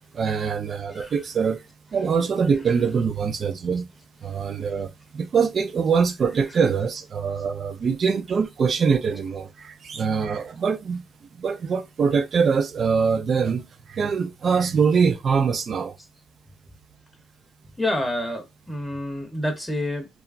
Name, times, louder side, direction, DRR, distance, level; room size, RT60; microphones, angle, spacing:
voice 1, 0.1-1.6 1.9-3.9 4.2-11.0 11.3-16.0, right 6 dB, 50° right, 0.4 m, -23 dB
voice 2, 17.8-20.1, left 1 dB, 5° left, 0.7 m, -28 dB
2.9 x 2.3 x 2.4 m
cardioid pair, 90°, 0 cm